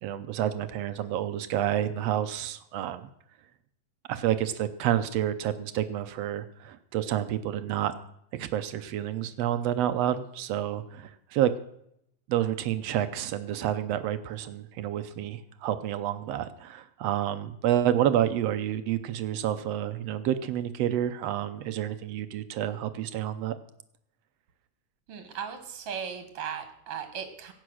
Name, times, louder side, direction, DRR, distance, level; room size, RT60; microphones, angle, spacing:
voice 1, 0.0-3.1 4.1-7.9 8.3-11.5 12.3-23.5, right 11 dB, 75° right, 11 dB, 1.6 m, -29 dB
voice 2, 25.1-27.5, right 7 dB, 55° right, 8 dB, 2.1 m, -37 dB
17.0 x 8.7 x 6.3 m, 0.74 s
omnidirectional pair, 3.5 m